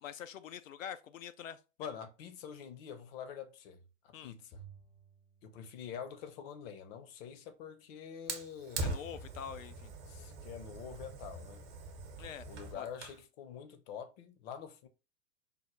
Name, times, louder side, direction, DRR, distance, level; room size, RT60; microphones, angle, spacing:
voice 1, 0.0-1.6 4.1-4.3 8.8-9.9 12.2-12.5 12.7-12.9, left 8 dB, 75° left, 0.5 m, -45 dB
voice 2, 1.8-4.6 5.4-9.0 10.1-11.6 12.5-14.9, left 7 dB, 45° left, 0.8 m, -46 dB
Bowed string instrument, 4.5-6.9, right 6 dB, 15° left, 0.4 m, -58 dB
Fire, 8.3-13.2, right 2 dB, 35° right, 0.9 m, -42 dB
5.1 x 2.0 x 3.1 m
figure-of-eight pair, 95°, 40 cm